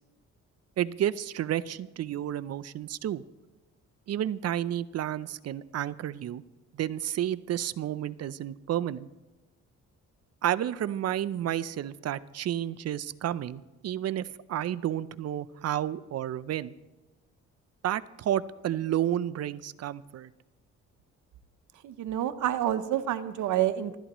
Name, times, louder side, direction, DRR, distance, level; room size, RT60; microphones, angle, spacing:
voice 1, 0.8-3.2 4.1-6.4 6.7-9.1 10.4-16.7 17.8-20.3, right 11 dB, 55° right, 15 dB, 0.6 m, -31 dB
voice 2, 21.8-24.0, right 12 dB, 75° right, 10 dB, 0.9 m, -28 dB
24.5 x 12.5 x 3.1 m, 1.1 s
cardioid pair, 90°, 30 cm